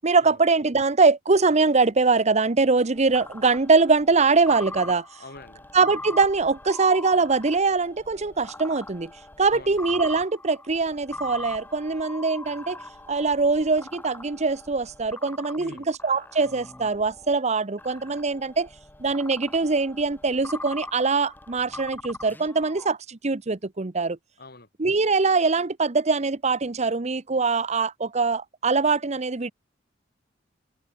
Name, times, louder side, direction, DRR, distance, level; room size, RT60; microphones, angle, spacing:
voice 1, 0.0-5.0 5.7-9.1 9.4-12.8 13.1-18.7 19.0-24.2 24.8-29.5, right 4 dB, 40° right, 0.9 m, -22 dB
sound 1, 2.9-17.3 17.8-22.9, left 2 dB, 10° left, 1.9 m, -42 dB
voice 2, 5.1-5.7 9.5-9.8 15.6-15.9 24.4-24.7, left 2 dB, 60° left, 5.3 m, -44 dB
head